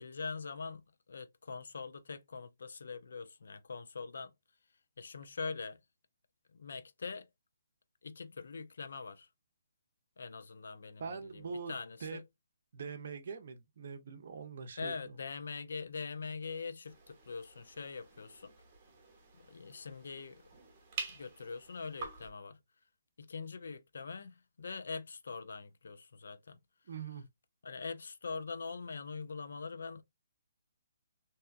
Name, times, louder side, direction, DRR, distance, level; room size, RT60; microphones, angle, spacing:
voice 1, 0.0-4.3 5.0-5.8 6.5-7.3 8.0-9.3 10.2-12.2 14.8-18.5 19.4-20.4 21.1-22.6 23.2-26.6 27.6-30.0, left 4 dB, 75° left, 0.4 m, -43 dB
voice 2, 11.0-12.2 12.7-15.2 26.9-27.3, right 5 dB, 55° right, 0.6 m, -43 dB
sound 1, 16.9-22.3, right 4 dB, 30° right, 1.0 m, -48 dB
2.7 x 2.2 x 2.4 m
hypercardioid pair, 160°, 0 cm